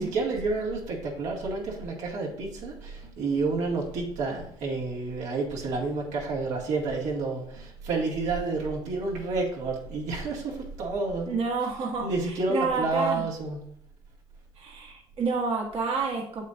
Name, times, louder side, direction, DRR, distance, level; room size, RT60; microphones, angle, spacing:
voice 1, 0.0-11.4 12.0-13.6, right 3 dB, 80° right, 2.3 m, -30 dB
voice 2, 11.3-13.2 14.6-16.4, right 4 dB, 50° right, 1.3 m, -29 dB
7.7 x 7.1 x 2.6 m
supercardioid pair, 80°, 12 cm